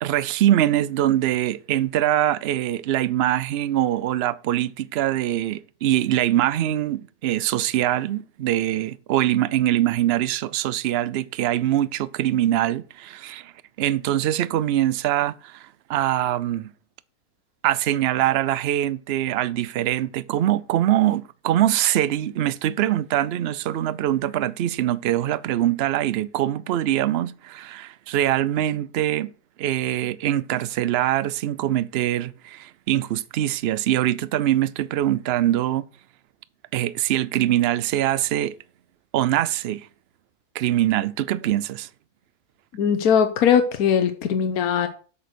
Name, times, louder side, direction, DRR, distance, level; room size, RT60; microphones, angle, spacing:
voice 1, 0.0-13.5 13.8-16.7 17.6-29.3 29.6-35.9 36.7-38.5 39.1-39.9 40.5-41.9, right 13 dB, 65° right, 0.6 m, -23 dB
voice 2, 42.7-44.9, left 7 dB, 85° left, 1.3 m, -20 dB
7.7 x 6.4 x 6.1 m
omnidirectional pair, 1.5 m